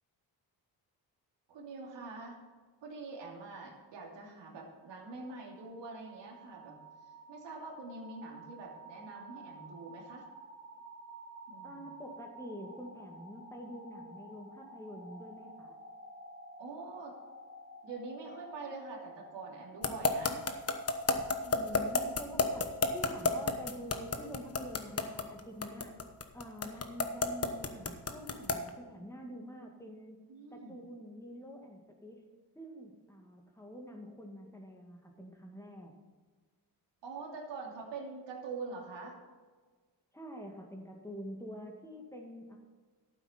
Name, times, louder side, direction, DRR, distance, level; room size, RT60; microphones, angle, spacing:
voice 1, 1.5-2.4 2.8-6.8 7.3-10.2 11.5-11.9 16.6-17.1 17.8-20.4 21.4-21.8 30.3-30.8 37.0-39.2, right 3 dB, 85° right, -1 dB, 2.7 m, -45 dB
sound 1, 4.8-22.7, right 1 dB, 70° left, 3.1 m, -52 dB
voice 2, 11.6-15.8 21.6-25.9 26.3-30.2 30.5-32.2 32.6-35.9 40.1-42.6, equal, 5° left, 1 dB, 2.0 m, -47 dB
sound 2, 19.8-28.7, left 4 dB, 35° left, 1.1 m, -30 dB
12.0 x 9.1 x 4.4 m, 1.4 s
cardioid pair, 90°, 42 cm